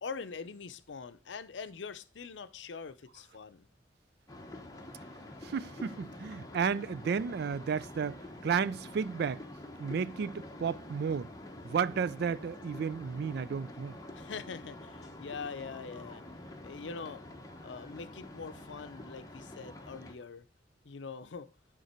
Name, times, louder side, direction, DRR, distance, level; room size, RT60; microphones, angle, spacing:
voice 1, 0.0-3.7 14.1-16.2 16.6-17.2 17.6-20.5 20.8-21.5, left 5 dB, 90° left, 0.6 m, -43 dB
sound 1, 4.3-20.1, left 1 dB, 20° left, 1.0 m, -47 dB
voice 2, 5.4-9.4 9.8-11.3 11.6-13.9, right 6 dB, 60° right, 0.3 m, -33 dB
9.2 x 3.8 x 4.4 m
head